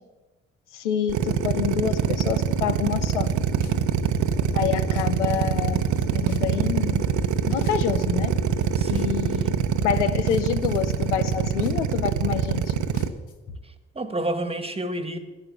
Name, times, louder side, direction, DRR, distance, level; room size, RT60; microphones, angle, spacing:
voice 1, 0.7-3.3 4.5-5.8 6.1-7.0 7.5-8.3 8.9-12.7, left 9 dB, 85° left, 13 dB, 0.5 m, -27 dB
Drill, 1.1-13.1, right 9 dB, 60° right, 0.9 m, -24 dB
sound 1, 2.9-13.6, left 2 dB, 60° left, 1.4 m, -38 dB
voice 2, 8.7-9.6 13.6-15.2, right 1 dB, 15° right, 10 dB, 1.5 m, -31 dB
11.5 x 10.0 x 6.9 m, 1.2 s
figure-of-eight pair, 40°, 34 cm